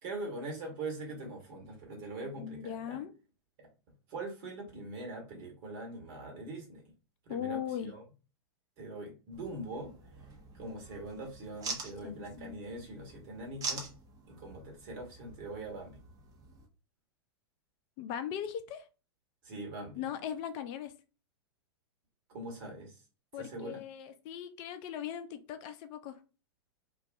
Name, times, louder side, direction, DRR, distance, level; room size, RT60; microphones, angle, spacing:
voice 1, 0.0-3.0 3.6-3.7 4.1-6.8 7.3-8.0 8.8-9.9 10.5-13.9 14.3-16.0 19.4-20.1 22.3-23.0 23.3-23.8, right 2 dB, 50° right, 1 dB, 1.3 m, -42 dB
voice 2, 2.4-3.1 7.3-7.9 12.0-12.6 18.0-18.8 20.0-20.9 23.3-26.2, left 9 dB, 40° left, 10 dB, 0.4 m, -39 dB
sound 1, 9.3-16.7, right 4 dB, 25° right, 0.7 m, -45 dB
2.4 x 2.3 x 2.5 m, 0.33 s
hypercardioid pair, 100°, 13 cm